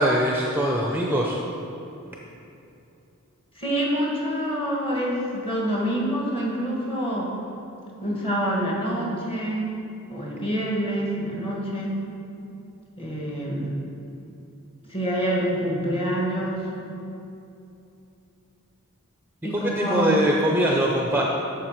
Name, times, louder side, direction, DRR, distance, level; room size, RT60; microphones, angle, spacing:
voice 1, 0.0-1.4 19.5-21.2, right 1 dB, 10° right, -1 dB, 0.6 m, -22 dB
voice 2, 3.6-7.3 8.0-9.7 10.1-12.0 13.0-13.7 14.9-16.7 19.4-20.2, equal, 25° left, -4 dB, 1.6 m, -26 dB
9.0 x 6.5 x 4.5 m, 2.7 s
head